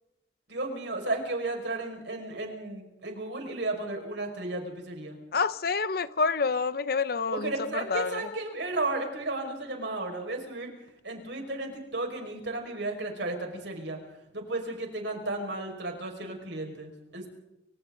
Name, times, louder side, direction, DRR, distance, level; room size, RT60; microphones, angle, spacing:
voice 1, 0.5-5.2 7.3-10.7 11.0-14.0 14.3-17.3, right 2 dB, 70° right, 5.7 m, -34 dB
voice 2, 5.3-7.5 7.9-8.3, left 4 dB, 50° left, 0.7 m, -27 dB
29.5 x 26.5 x 4.0 m
head